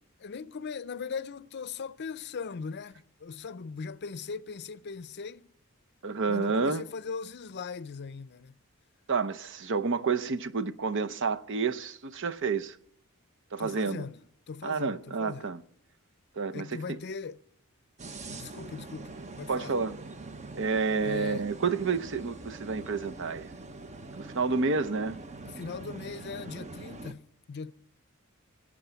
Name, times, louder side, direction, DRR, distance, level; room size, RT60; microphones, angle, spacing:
voice 1, 0.2-5.5 6.3-8.6 13.6-15.6 16.5-17.4 18.3-19.8 21.0-21.5 25.5-27.7, left 5 dB, 50° left, 0.5 m, -39 dB
voice 2, 6.0-6.8 9.1-12.8 13.5-14.1 14.6-15.6 16.4-17.0 19.5-20.0 20.5-23.5 24.1-25.2, right 4 dB, 60° right, 0.8 m, -29 dB
sound 1, 18.0-27.1, right 3 dB, 35° right, 0.9 m, -44 dB
19.5 x 8.7 x 8.0 m
head